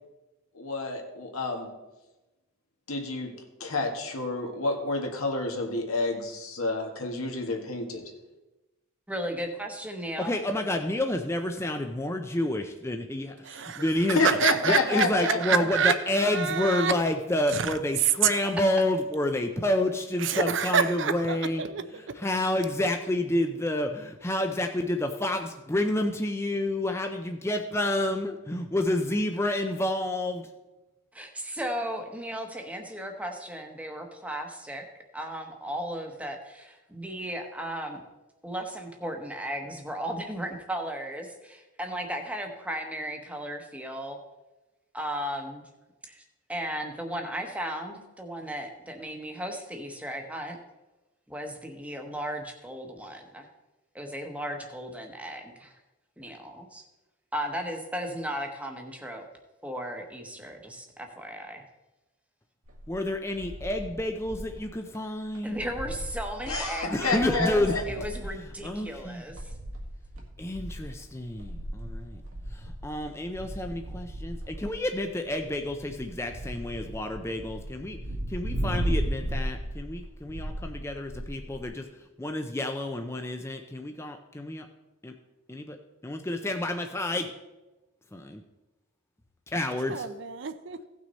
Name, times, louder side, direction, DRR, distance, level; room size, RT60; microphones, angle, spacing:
voice 1, 0.5-1.7 2.9-3.3 3.6-8.0 14.1-15.6 66.5-67.8, left 3 dB, 85° left, 2 dB, 1.8 m, -29 dB
voice 2, 9.1-10.3 18.4-18.7 31.1-34.9 35.1-38.0 38.4-44.2 44.9-45.7 46.1-46.2 46.5-50.6 51.3-53.5 53.9-55.8 56.2-56.8 57.3-59.2 59.6-61.6 65.4-69.5, equal, 5° right, 4 dB, 1.0 m, -35 dB
voice 3, 10.2-14.4 14.7-21.6 22.2-30.5 62.9-65.6 66.9-68.0 68.6-69.2 70.4-72.2 72.5-78.0 78.3-81.9 82.2-84.7 85.0-85.1 85.5-85.8 86.0-87.3 88.1-88.4 89.5-90.1, left 1 dB, 10° left, 5 dB, 0.5 m, -29 dB
voice 4, 13.4-16.9 17.5-17.7 18.0-18.3 20.2-22.1 89.9-90.8, right 7 dB, 55° right, 11 dB, 0.6 m, -28 dB
sound 1, 62.6-64.6 64.9-65.0 65.3-81.6, right 1 dB, 80° right, 1.8 m, -36 dB
16.0 x 6.1 x 4.1 m, 1.1 s
head